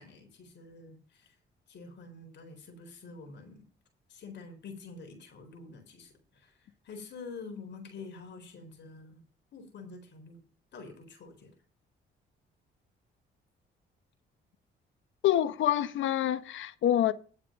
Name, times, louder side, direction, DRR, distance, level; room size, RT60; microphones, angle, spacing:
voice 1, 0.0-1.3 1.7-3.6 4.1-9.2 9.5-10.4 10.7-11.5, left 4 dB, 60° left, 3.9 m, -47 dB
voice 2, 15.2-17.1, left 12 dB, 75° left, 1.1 m, -26 dB
10.5 x 7.5 x 5.3 m
cardioid pair, 90°, 20 cm